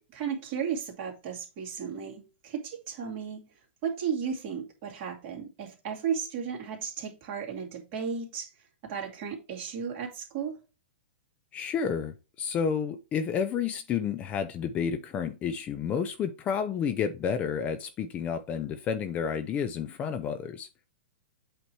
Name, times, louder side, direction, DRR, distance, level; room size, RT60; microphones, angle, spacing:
voice 1, 0.0-8.5 8.8-10.6, right 7 dB, 35° right, 2.4 m, -34 dB
voice 2, 11.5-20.7, left 7 dB, 20° left, 0.5 m, -30 dB
8.2 x 3.0 x 4.6 m
hypercardioid pair, 150°, 6 cm